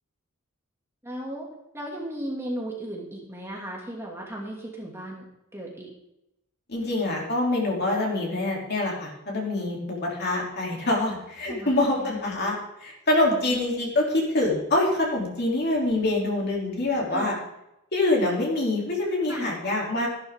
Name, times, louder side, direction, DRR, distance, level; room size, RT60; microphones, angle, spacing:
voice 1, 1.0-1.5 1.7-5.3 5.5-5.9 11.5-12.2 13.3-13.6 17.1-17.3 19.3-19.5, right 1 dB, 10° right, -2 dB, 2.4 m, -36 dB
voice 2, 6.7-17.3 17.9-20.1, left 2 dB, 50° left, -2 dB, 3.1 m, -25 dB
14.0 x 11.5 x 3.7 m, 0.85 s
head